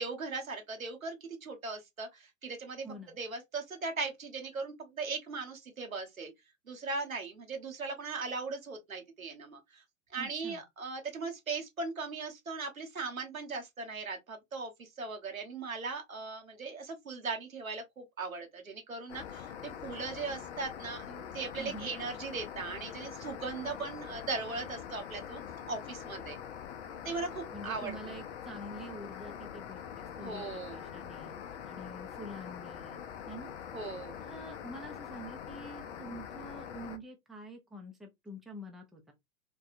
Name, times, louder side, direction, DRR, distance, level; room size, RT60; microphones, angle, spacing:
voice 1, 0.0-2.9 3.2-6.3 6.7-9.8 10.1-25.4 25.7-26.4 27.0-27.9 30.2-30.8 33.7-34.2, right 4 dB, 85° right, 1.0 m, -39 dB
voice 2, 2.8-3.2 10.2-10.6 21.6-21.9 27.5-31.4 31.6-33.5 34.2-39.1, right 1 dB, ahead, 0.5 m, -47 dB
sound 1, 19.1-37.0, left 8 dB, 60° left, 0.6 m, -44 dB
3.4 x 2.3 x 2.5 m
figure-of-eight pair, 95°, 40 cm